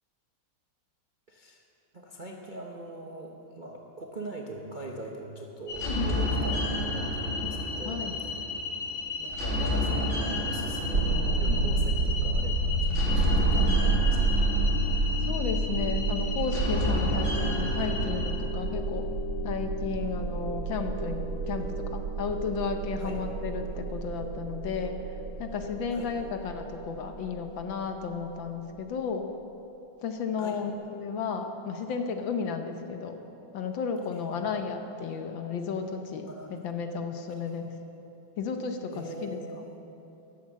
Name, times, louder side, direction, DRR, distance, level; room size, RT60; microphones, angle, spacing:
voice 1, 1.3-1.6 1.9-8.4 9.2-14.5 21.6-21.7 23.0-23.2 25.9-26.1 30.4-30.6 34.1-34.5 36.3-36.6 37.3-37.6 38.9-39.7, right 1 dB, 35° right, 0 dB, 0.8 m, -42 dB
sound 1, 5.7-18.3, left 2 dB, 35° left, 2.9 m, -30 dB
sound 2, 10.9-27.8, right 3 dB, 50° right, 2.9 m, -29 dB
voice 2, 15.3-19.1 19.4-25.0 25.4-29.3 30.0-33.2 33.5-36.3 36.6-37.6 38.4-39.4, left 5 dB, 65° left, 6 dB, 1.6 m, -33 dB
13.5 x 11.5 x 7.4 m, 3.0 s
omnidirectional pair, 2.4 m